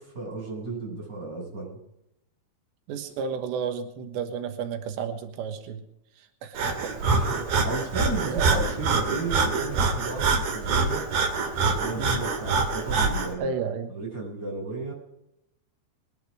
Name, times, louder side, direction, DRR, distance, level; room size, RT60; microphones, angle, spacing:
voice 1, 0.0-1.8 7.0-11.0 11.7-13.6 13.9-14.9, right 3 dB, 20° right, -2 dB, 7.0 m, -34 dB
voice 2, 2.9-5.8 6.4-6.7 8.3-8.5 12.0-12.2 13.4-13.9, right 6 dB, 90° right, 7 dB, 3.6 m, -32 dB
Breathing, 6.5-13.3, right 4 dB, 60° right, 3.9 m, -25 dB
22.5 x 11.0 x 4.9 m, 0.81 s
omnidirectional pair, 5.0 m